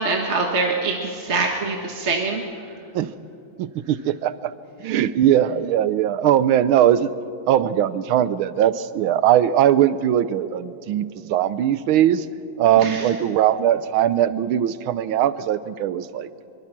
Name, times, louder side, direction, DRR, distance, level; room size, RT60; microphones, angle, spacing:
voice 1, 0.0-2.4 12.8-13.1, right 3 dB, 35° right, 1 dB, 1.5 m, -24 dB
voice 2, 3.6-4.5 4.8-7.1 7.5-12.3 12.6-16.3, right 11 dB, 85° right, 15 dB, 1.6 m, -20 dB
23.5 x 23.0 x 6.0 m, 2.9 s
omnidirectional pair, 2.2 m